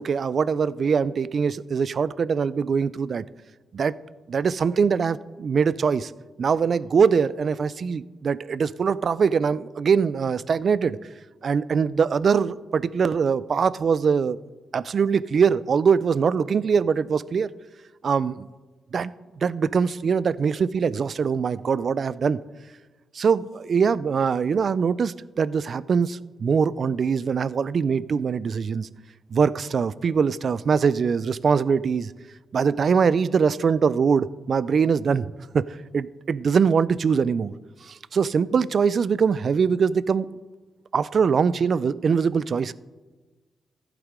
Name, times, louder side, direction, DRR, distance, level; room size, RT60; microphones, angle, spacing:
voice 1, 0.0-3.2 3.7-3.9 4.3-6.1 6.4-11.0 11.4-14.4 14.7-17.5 18.0-18.5 18.9-19.1 19.4-22.4 23.2-28.9 29.3-32.1 32.5-35.6 35.9-37.5 37.9-40.3 40.9-42.7, right 6 dB, 50° right, 19 dB, 0.3 m, -22 dB
14.5 x 8.2 x 3.7 m, 1.3 s
cardioid pair, 105°, 0 cm